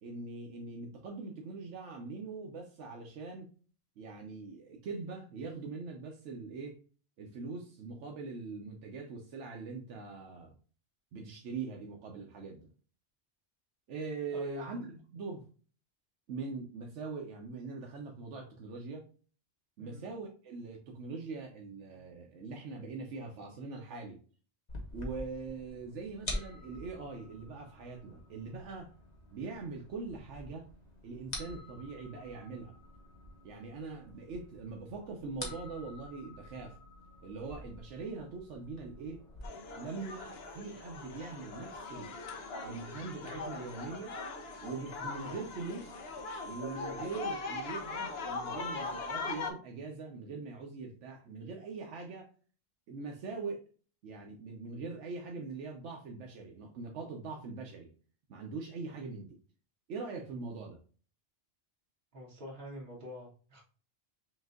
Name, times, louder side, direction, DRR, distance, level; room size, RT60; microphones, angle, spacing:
voice 1, 0.0-3.5 4.0-6.8 7.2-10.5 11.1-12.7 13.9-15.4 16.3-19.0 19.8-24.2 24.9-28.9 29.3-30.7 31.0-32.7 33.4-36.8 37.2-39.2 39.8-42.1 42.6-44.2 44.6-46.0 46.5-52.3 52.9-53.7 54.0-57.9 58.3-59.4 59.9-60.8, right 4 dB, 90° right, 1 dB, 1.0 m, -42 dB
voice 2, 14.3-14.7 19.8-20.0 62.1-63.6, left 1 dB, 65° right, -3 dB, 1.8 m, -45 dB
sound 1, 24.7-39.5, left 1 dB, 40° left, 1.1 m, -47 dB
sound 2, 39.4-49.5, left 3 dB, 60° left, 0.9 m, -40 dB
5.9 x 2.6 x 2.4 m, 0.40 s
omnidirectional pair, 1.2 m